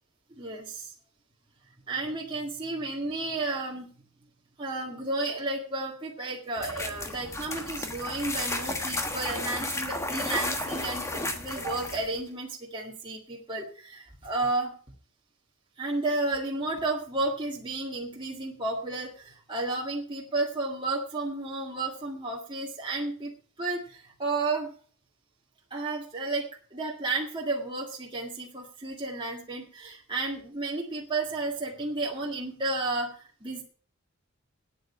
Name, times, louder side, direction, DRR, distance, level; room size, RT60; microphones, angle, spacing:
voice 1, 0.4-0.9 1.9-3.9 4.6-14.7 15.8-23.3 23.6-24.7 25.7-26.4 26.7-33.6, right 2 dB, 20° right, -2 dB, 1.9 m, -32 dB
sound 1, 6.6-12.2, left 2 dB, 15° left, 1.2 m, -33 dB
9.2 x 7.8 x 8.5 m, 0.43 s
head